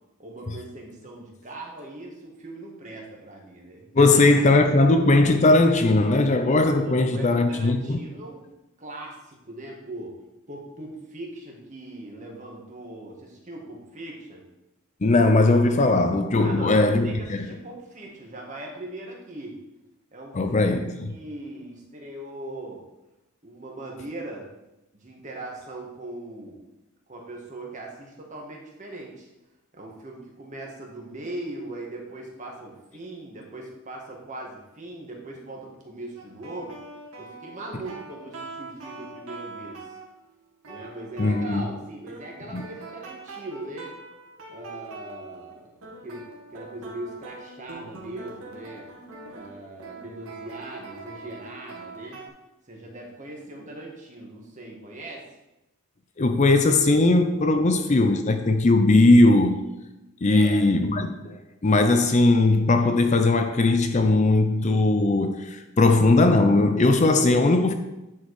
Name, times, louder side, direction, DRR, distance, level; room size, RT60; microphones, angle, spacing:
voice 1, 0.2-4.2 6.8-8.4 8.8-10.1 10.5-14.4 16.4-19.6 20.1-20.7 21.0-22.8 23.4-24.5 24.9-26.6 27.1-29.3 29.7-36.8 37.2-39.8 40.7-43.9 44.5-48.9 49.3-52.2 52.7-55.2 60.3-60.6, right 1 dB, 35° right, 1.6 m, -40 dB
voice 2, 3.9-8.0 15.0-17.5 20.3-20.9 41.2-41.6 42.5-42.6 56.2-59.6 60.2-67.7, left 2 dB, 35° left, 0.5 m, -19 dB
sound 1, 36.2-40.1 40.6-41.8 42.1-45.6 45.8-52.3, right 3 dB, 85° right, 2.0 m, -43 dB
9.5 x 4.5 x 4.7 m
head